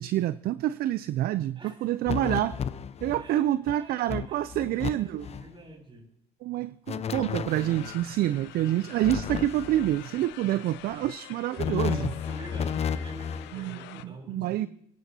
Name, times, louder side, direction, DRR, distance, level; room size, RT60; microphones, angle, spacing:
voice 1, 0.0-2.6 3.0-5.3 6.4-12.1 13.5-14.7, right 13 dB, 50° right, 0.5 m, -27 dB
voice 2, 1.4-1.8 3.2-6.1 11.8-14.7, right 2 dB, 25° right, 3.6 m, -47 dB
sound 1, 2.1-3.3 3.7-3.8 4.1-4.9 5.2-5.5 6.9-8.0 9.0-10.0 11.6-13.5, left 7 dB, 30° left, 0.7 m, -32 dB
sound 2, 7.5-14.0, left 14 dB, 65° left, 0.8 m, -46 dB
30.0 x 10.5 x 2.8 m
supercardioid pair, 85°, 20 cm